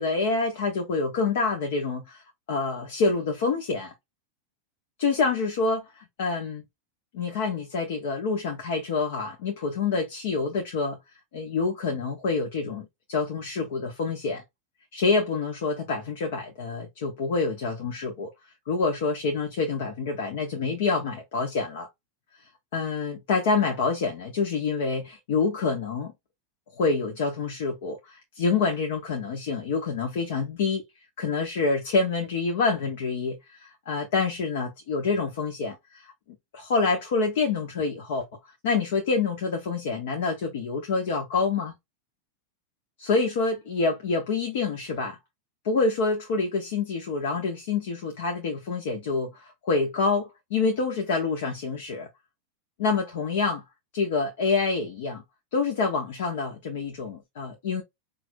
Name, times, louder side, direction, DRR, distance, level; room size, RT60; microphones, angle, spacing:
voice 1, 0.0-2.2 2.5-3.9 5.0-6.6 7.1-11.0 11.3-14.4 14.9-18.3 18.6-21.9 22.4-26.1 26.7-30.8 31.2-36.1 36.5-38.3 38.6-41.7 43.0-45.2 45.6-52.1 52.8-53.6 53.9-55.2 55.5-57.8, left 4 dB, 70° left, 1.7 m, -27 dB
4.7 x 3.4 x 2.5 m
supercardioid pair, 145°, 0 cm